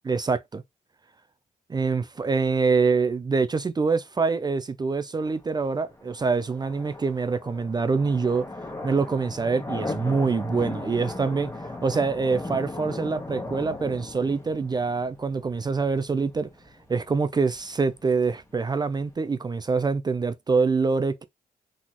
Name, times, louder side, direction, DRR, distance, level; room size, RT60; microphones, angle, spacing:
voice 1, 0.0-0.6 1.7-8.4 8.8-16.5 16.9-21.2, right 4 dB, 25° right, 0.5 m, -25 dB
sound 1, 5.2-19.1, left 2 dB, 20° left, 1.5 m, -38 dB
4.0 x 3.8 x 3.0 m
cardioid pair, 105°, 16 cm